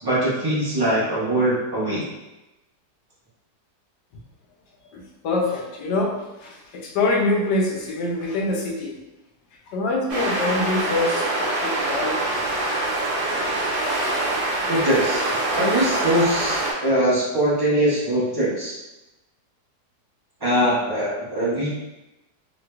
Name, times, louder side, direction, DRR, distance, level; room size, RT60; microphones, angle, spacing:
voice 1, 0.0-2.0 14.7-18.7 20.4-21.7, right 1 dB, 25° right, -9 dB, 0.5 m, -22 dB
voice 2, 4.9-8.9 9.7-12.2, left 2 dB, 80° left, -1 dB, 1.2 m, -25 dB
sound 1, 10.1-16.7, right 2 dB, 80° right, 1.3 m, -24 dB
3.2 x 2.9 x 2.2 m, 0.98 s
omnidirectional pair, 1.8 m